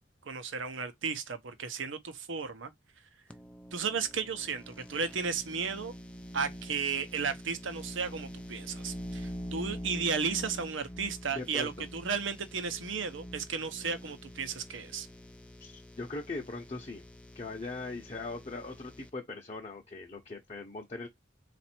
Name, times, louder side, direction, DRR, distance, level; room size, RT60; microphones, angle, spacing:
voice 1, 0.2-2.7 3.7-5.9 6.3-15.1, right 5 dB, 80° right, 0.8 m, -34 dB
sound 1, 3.3-19.1, equal, 5° left, 0.4 m, -45 dB
voice 2, 11.3-11.9 15.6-17.0 17.3-21.1, left 3 dB, 30° left, 0.8 m, -40 dB
4.2 x 2.6 x 4.3 m
head